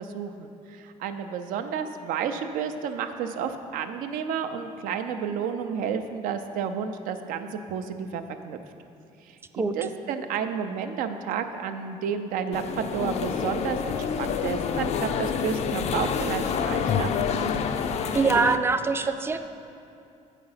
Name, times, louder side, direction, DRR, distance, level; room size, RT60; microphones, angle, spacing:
voice 1, 0.0-8.6 9.3-17.1, right 7 dB, 85° right, 8 dB, 0.5 m, -31 dB
sound 1, 12.5-18.6, left 6 dB, 50° left, 0.4 m, -28 dB
voice 2, 18.1-19.4, right 4 dB, 15° right, 9 dB, 0.3 m, -23 dB
7.8 x 5.0 x 5.6 m, 2.6 s
cardioid pair, 110°, 14 cm